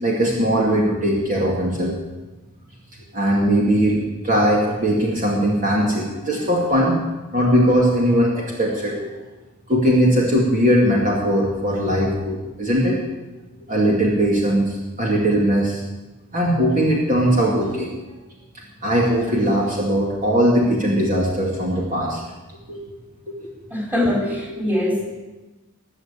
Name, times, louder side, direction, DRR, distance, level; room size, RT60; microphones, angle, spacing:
voice 1, 0.0-1.9 3.1-7.0 7.3-9.2 9.7-13.0 13.7-15.8 16.3-17.9 18.8-22.2 22.7-22.8 23.3-23.4 24.1-24.3, equal, 35° right, -3 dB, 2.4 m, -19 dB
voice 2, 23.7-25.0, left 1 dB, 5° right, -2 dB, 3.8 m, -22 dB
21.0 x 7.4 x 8.4 m, 1.2 s
head